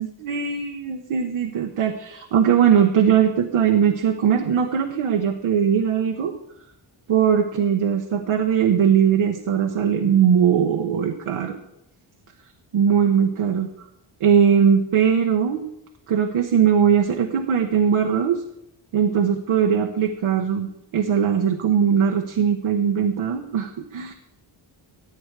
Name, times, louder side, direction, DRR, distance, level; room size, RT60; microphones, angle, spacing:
voice 1, 0.0-6.3 7.1-11.6 12.7-13.7 14.2-15.6 16.1-18.4 18.9-20.7 20.9-24.1, right 7 dB, 85° right, 4 dB, 1.0 m, -20 dB
15.0 x 8.9 x 4.7 m, 0.82 s
cardioid pair, 95°, 49 cm